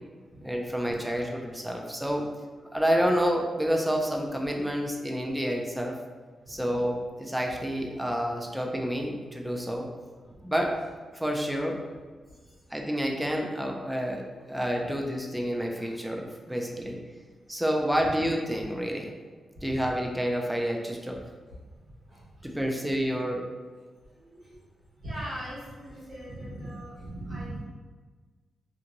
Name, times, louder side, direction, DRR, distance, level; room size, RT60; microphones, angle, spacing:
voice 1, 0.4-2.3 2.7-6.0 6.5-9.9 10.4-10.8 11.1-11.8 12.7-17.0 17.5-19.2 19.6-21.2 22.4-23.5, equal, 5° right, 0 dB, 0.3 m, -29 dB
voice 2, 24.2-24.6 25.0-27.6, right 1 dB, 45° right, -12 dB, 1.4 m, -39 dB
2.9 x 2.5 x 2.6 m, 1.4 s
wide cardioid pair, 130°, 0 cm